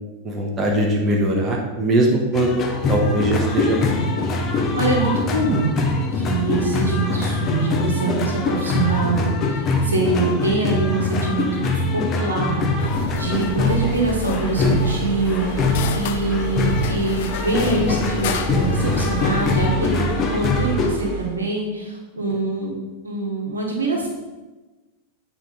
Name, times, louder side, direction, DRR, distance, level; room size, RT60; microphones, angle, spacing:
voice 1, 0.2-2.6 2.9-4.0, right 1 dB, 25° right, -1 dB, 1.3 m, -21 dB
sound 1, 2.3-20.9, left 3 dB, 30° left, 0.9 m, -23 dB
voice 2, 4.7-5.8 6.1-11.6 11.9-12.9 13.2-22.8 23.0-24.1, right 3 dB, 75° right, 1 dB, 1.4 m, -24 dB
sound 2, 12.8-19.7, left 8 dB, 50° left, 0.5 m, -32 dB
sound 3, 13.3-21.4, right 1 dB, 50° right, 1.2 m, -32 dB
8.8 x 4.7 x 4.0 m, 1.2 s
figure-of-eight pair, 90°, 0 cm